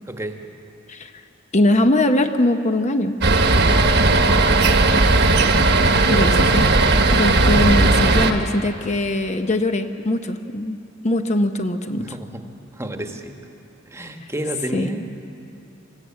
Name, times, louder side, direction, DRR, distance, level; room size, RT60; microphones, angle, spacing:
voice 1, 0.9-1.2 1.5-3.2 6.1-6.7 7.1-12.2 14.7-14.9, left 1 dB, 35° left, 7 dB, 0.8 m, -21 dB
sound 1, 3.2-8.3, right 2 dB, 60° right, 1.3 m, -16 dB
voice 2, 12.0-12.4 12.7-13.3 13.9-15.0, right 1 dB, 15° right, 5 dB, 1.2 m, -30 dB
25.0 x 14.0 x 8.5 m, 2.9 s
head